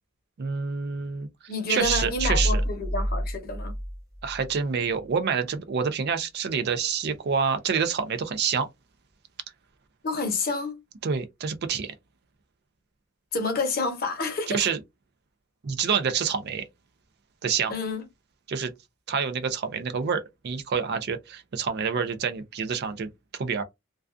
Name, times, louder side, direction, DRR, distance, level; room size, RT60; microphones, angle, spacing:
voice 1, 0.4-1.3 1.7-2.6 4.2-8.7 11.0-11.9 14.5-14.8 15.6-16.6 17.4-17.7 18.5-18.7 19.1-23.1 23.4-23.6, right 6 dB, 50° right, 0.4 m, -27 dB
voice 2, 1.5-3.7 10.0-10.8 13.3-14.7 17.7-18.0, left 3 dB, 45° left, 0.8 m, -29 dB
sound 1, 1.8-4.6, equal, 15° right, 0.7 m, -28 dB
2.3 x 2.3 x 2.4 m
head